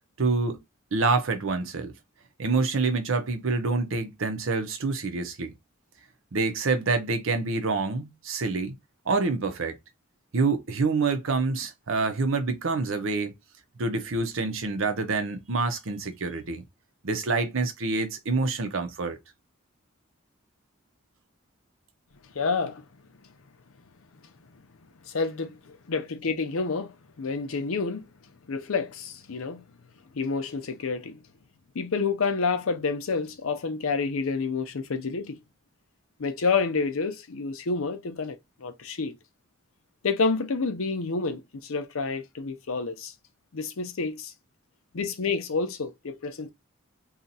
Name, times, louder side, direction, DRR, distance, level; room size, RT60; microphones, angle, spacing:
voice 1, 0.2-0.6 0.9-1.9 2.4-5.5 6.3-8.7 9.1-9.8 10.3-13.3 13.8-16.6 17.0-19.2, right 3 dB, 70° right, 0.7 m, -27 dB
voice 2, 22.3-22.8 24.5-24.6 25.0-28.1 28.5-29.6 30.1-31.2 31.7-35.4 36.2-39.2 40.0-43.1 43.5-44.3 44.9-46.5, left 4 dB, 75° left, 0.6 m, -29 dB
2.8 x 2.4 x 4.0 m
head